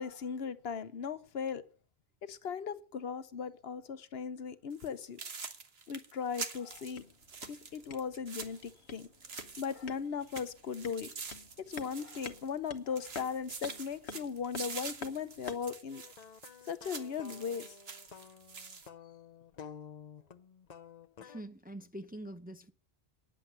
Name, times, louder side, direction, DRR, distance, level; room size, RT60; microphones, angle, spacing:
voice 1, 0.0-1.6 2.3-5.2 5.9-7.0 7.5-9.1 9.6-11.1 11.7-16.0 16.7-17.8, left 6 dB, 70° left, 1.0 m, -38 dB
Slow walking leaves, 4.7-4.9 5.2-9.9 10.2-12.7 13.0-18.9, right 5 dB, 70° right, 1.5 m, -46 dB
sound 1, 6.7-15.8, left 4 dB, 85° left, 1.3 m, -50 dB
sound 2, 15.9-21.4, left 7 dB, 45° left, 0.7 m, -51 dB
voice 2, 21.2-22.7, right 1 dB, 10° right, 0.6 m, -45 dB
9.8 x 7.5 x 7.9 m
omnidirectional pair, 1.1 m